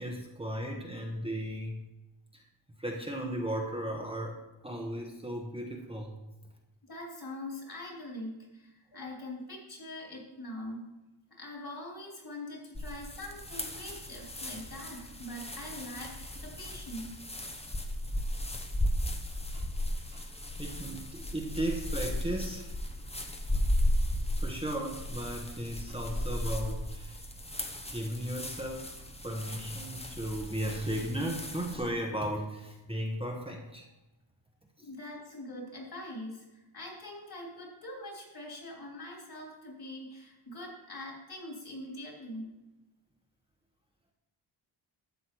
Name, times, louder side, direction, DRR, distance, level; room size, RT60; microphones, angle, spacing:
voice 1, 0.0-1.8 2.3-2.4 2.8-6.2 19.5-19.7 20.0-20.3 20.6-22.8 24.4-27.2 27.9-28.9 29.2-33.9 34.8-34.9, right 1 dB, 10° right, -1 dB, 1.2 m, -36 dB
voice 2, 6.8-10.9 11.3-17.2 34.8-42.5, left 1 dB, 50° left, -1 dB, 3.5 m, -43 dB
sound 1, 12.7-31.7, left 1 dB, 15° left, 1.0 m, -35 dB
12.0 x 8.0 x 4.6 m, 1.0 s
wide cardioid pair, 140°, 47 cm